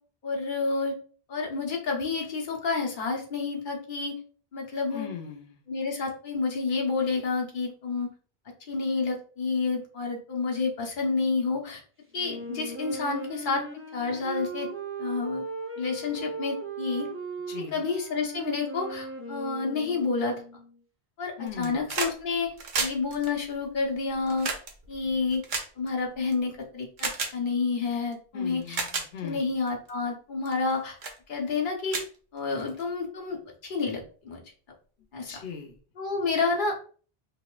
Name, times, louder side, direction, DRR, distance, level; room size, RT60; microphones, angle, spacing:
voice 1, 0.2-0.9 1.3-4.1 4.5-5.1 5.7-8.1 8.7-11.8 12.1-13.6 13.9-14.7 15.0-15.4 15.8-17.1 17.6-20.4 21.2-22.5 22.8-24.5 24.9-25.4 25.8-28.8 29.2-31.0 31.3-32.0 32.3-34.4 35.1-35.3 36.0-36.8, left 4 dB, 55° left, 0 dB, 1.1 m, -29 dB
voice 2, 4.9-5.6 17.5-17.8 21.4-21.9 28.3-29.5 35.3-35.7, left 8 dB, 90° left, 2 dB, 0.9 m, -39 dB
Wind instrument woodwind instrument, 12.2-20.7, right 3 dB, 20° right, 0.4 m, -38 dB
sound 1, 21.5-22.2 22.4-26.3 27.0-27.3 28.1-28.2 28.6-29.1 29.7-29.9 30.4-30.7 31.0-31.2 31.5-31.6 31.9-32.8 34.0-34.1, right 4 dB, 55° right, 0.8 m, -32 dB
4.0 x 2.9 x 2.4 m, 0.41 s
omnidirectional pair, 1.0 m